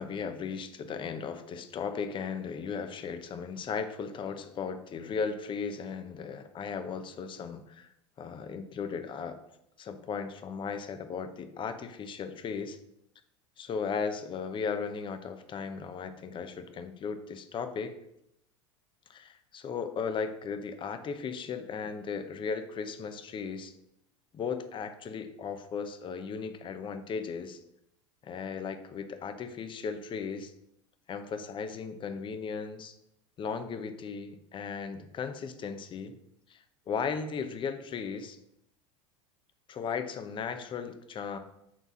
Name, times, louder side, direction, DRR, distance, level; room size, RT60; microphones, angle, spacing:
voice 1, 0.0-7.9 8.2-9.4 9.8-12.8 13.6-18.0 19.1-23.7 24.3-27.6 28.2-30.5 31.1-32.9 33.4-36.1 36.5-38.4 39.7-41.4, left 6 dB, 30° left, 8 dB, 0.9 m, -36 dB
6.0 x 3.9 x 6.2 m, 0.79 s
hypercardioid pair, 90°, 16 cm